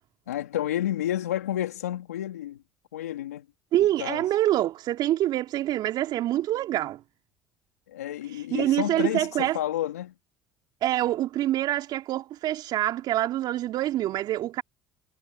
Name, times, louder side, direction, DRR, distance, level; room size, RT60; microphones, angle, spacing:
voice 1, 0.3-2.6 2.9-3.4 4.0-4.2 7.9-10.1, left 12 dB, 90° left, 3.0 m, -30 dB
voice 2, 3.7-7.0 8.3-9.6 10.8-14.6, right 13 dB, 60° right, 3.1 m, -26 dB
hypercardioid pair, 60°, 8 cm